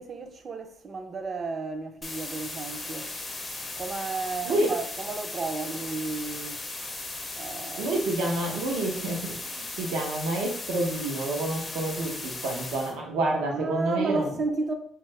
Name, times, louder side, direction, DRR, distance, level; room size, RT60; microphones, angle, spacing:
voice 1, 0.0-3.1 3.8-6.6 7.4-8.0 13.4-14.7, right 3 dB, 35° right, 0.4 m, -32 dB
sound 1, 2.0-12.9, left 2 dB, 20° left, 0.4 m, -37 dB
voice 2, 7.8-14.3, right 2 dB, 85° right, 0.6 m, -28 dB
2.7 x 2.3 x 3.1 m
cardioid pair, 105°, 0 cm